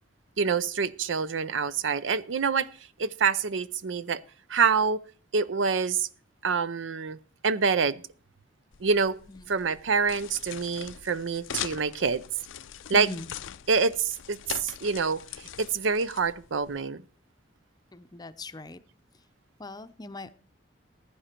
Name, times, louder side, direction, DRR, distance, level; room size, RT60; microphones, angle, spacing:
voice 1, 0.4-2.7 3.0-4.2 4.5-5.0 5.3-6.1 6.4-7.2 7.4-8.0 8.8-9.2 9.5-12.2 12.9-13.1 13.7-17.0, right 5 dB, 75° right, 0.6 m, -26 dB
sound 1, 8.7-16.8, left 9 dB, 80° left, 0.5 m, -42 dB
voice 2, 12.9-13.3 17.9-18.8 19.6-20.3, left 1 dB, 20° left, 0.6 m, -39 dB
15.0 x 10.0 x 4.4 m
head